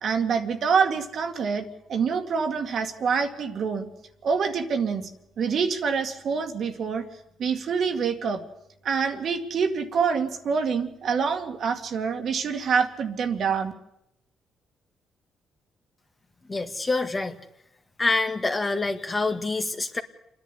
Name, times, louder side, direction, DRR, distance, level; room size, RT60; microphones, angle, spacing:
voice 1, 0.0-3.9 4.2-5.1 5.4-7.1 7.4-8.4 8.8-13.7, right 6 dB, 60° right, 5 dB, 2.1 m, -26 dB
voice 2, 16.5-17.4 18.0-20.0, left 3 dB, 25° left, 6 dB, 1.8 m, -26 dB
28.0 x 10.5 x 9.9 m, 0.80 s
cardioid pair, 90°, 0 cm